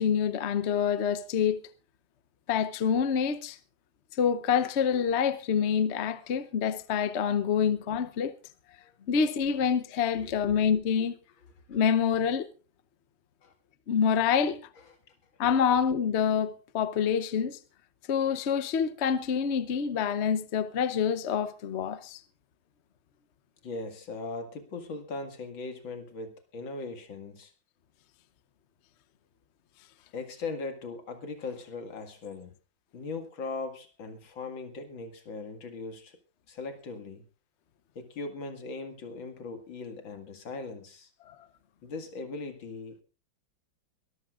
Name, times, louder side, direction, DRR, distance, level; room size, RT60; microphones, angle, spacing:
voice 1, 0.0-1.6 2.5-3.6 4.2-8.4 9.1-11.2 11.7-12.5 13.9-14.6 15.4-17.6 18.1-22.2 41.3-41.4, left 7 dB, 55° left, 0.7 m, -26 dB
voice 2, 10.1-10.5 13.4-13.5 23.6-27.5 30.1-32.5 32.9-36.2 36.5-37.2 38.0-41.1 41.8-43.0, left 3 dB, 75° left, 2.8 m, -39 dB
22.5 x 14.0 x 2.5 m
omnidirectional pair, 2.1 m